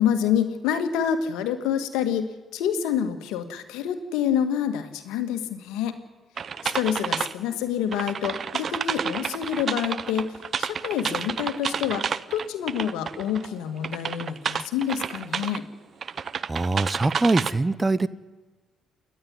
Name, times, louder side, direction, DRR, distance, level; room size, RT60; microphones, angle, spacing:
voice 1, 0.0-6.0 6.6-15.6, left 9 dB, 75° left, 8 dB, 1.8 m, -27 dB
sound 1, 6.4-7.3 7.9-13.5 13.8-15.6 16.0-17.5, right 6 dB, 50° right, 0.7 m, -30 dB
voice 2, 16.5-18.1, right 2 dB, 25° right, 18 dB, 1.0 m, -23 dB
28.5 x 11.0 x 9.9 m, 1.3 s
hypercardioid pair, 50°, 0 cm